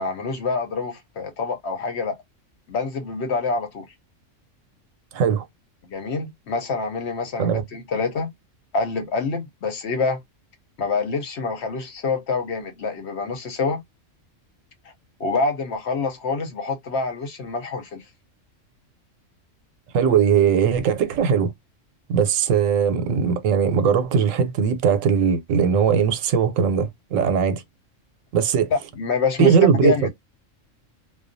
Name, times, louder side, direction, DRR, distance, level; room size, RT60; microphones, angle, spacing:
voice 1, 0.0-2.2 2.7-3.9 5.8-8.3 8.7-10.2 10.8-13.8 15.2-18.0 28.7-29.6 29.8-30.1, left 4 dB, 60° left, 0.9 m, -26 dB
voice 2, 5.1-5.5 7.4-7.6 19.9-21.5 22.1-27.6 28.3-28.7 29.4-30.1, right 7 dB, 85° right, 1.0 m, -19 dB
2.3 x 2.2 x 2.5 m
omnidirectional pair, 1.3 m